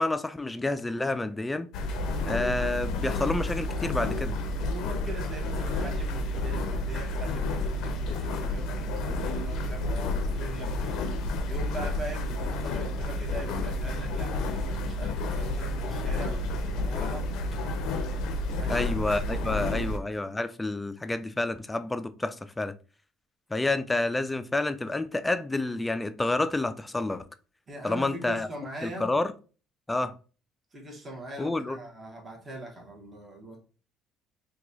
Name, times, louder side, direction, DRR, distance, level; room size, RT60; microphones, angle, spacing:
voice 1, 0.0-1.7 2.3-4.3 18.7-22.7 23.5-27.3 27.8-28.5 28.8-29.3 29.9-30.1 31.4-31.8, left 2 dB, 15° left, 0.3 m, -29 dB
sound 1, 1.7-20.0, left 2 dB, 75° left, 0.5 m, -30 dB
voice 2, 4.7-17.3 18.5-19.9 27.7-29.1 30.7-33.6, right 1 dB, 25° right, 1.1 m, -41 dB
3.0 x 2.3 x 3.9 m
supercardioid pair, 90°, 0 cm